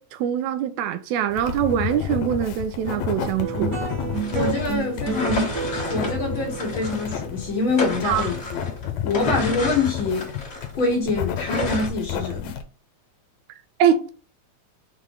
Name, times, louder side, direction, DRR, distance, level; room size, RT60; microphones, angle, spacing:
voice 1, 0.0-3.7 8.0-8.3 13.8-14.1, right 9 dB, 85° right, 2.0 m, -23 dB
sound 1, 1.3-12.6, left 9 dB, 75° left, 2.0 m, -31 dB
sound 2, 2.8-9.5, right 6 dB, 55° right, 1.2 m, -31 dB
sound 3, 4.1-7.3 7.6-10.9 11.4-11.9, left 1 dB, 35° left, 1.5 m, -31 dB
voice 2, 4.3-5.5 5.9-8.7 9.0-10.3 10.7-12.6, left 3 dB, 55° left, 1.7 m, -25 dB
5.5 x 3.9 x 4.9 m
omnidirectional pair, 3.3 m